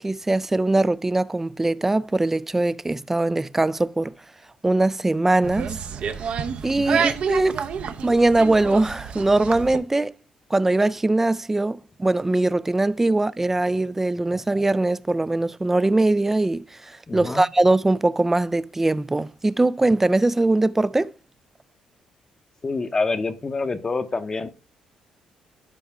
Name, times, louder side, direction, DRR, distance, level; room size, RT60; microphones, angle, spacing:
voice 1, 0.0-4.1 4.6-5.8 6.6-7.7 8.0-10.1 10.5-21.1, right 2 dB, 15° right, 0.3 m, -21 dB
sound 1, 5.4-9.8, right 7 dB, 60° right, 0.7 m, -28 dB
voice 2, 6.7-7.1 17.1-17.4 22.6-24.5, left 3 dB, 25° left, 0.8 m, -27 dB
11.5 x 4.7 x 3.5 m
cardioid pair, 110°, 2 cm